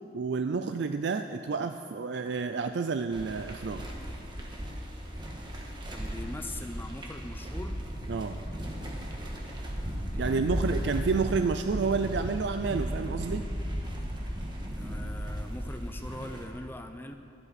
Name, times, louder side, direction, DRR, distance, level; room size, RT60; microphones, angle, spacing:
voice 1, 0.1-3.9 8.1-8.4 10.2-13.5, right 4 dB, 65° right, 8 dB, 0.4 m, -30 dB
sound 1, 3.1-16.4, equal, 25° right, 1.5 m, -35 dB
voice 2, 5.9-7.8 10.1-10.8 14.8-17.2, left 1 dB, 10° left, 6 dB, 0.6 m, -42 dB
24.5 x 8.1 x 4.2 m, 2.6 s
head